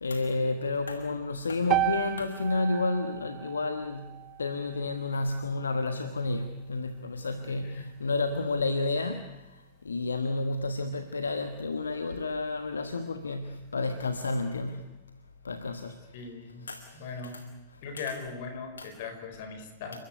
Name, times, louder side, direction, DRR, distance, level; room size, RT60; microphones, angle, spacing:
voice 1, 0.0-9.2 9.8-14.9 15.4-15.9 16.7-16.9 17.2-17.4 18.0-18.1 18.8-18.9, left 3 dB, 75° left, 9 dB, 1.3 m, -31 dB
sound 1, 1.7-5.9, right 14 dB, 35° right, 0.7 m, -34 dB
voice 2, 7.4-7.9 16.1-16.7 16.9-17.4 17.8-20.0, left 4 dB, 50° left, 7 dB, 4.9 m, -39 dB
29.5 x 14.0 x 9.7 m, 0.99 s
figure-of-eight pair, 90°, 0 cm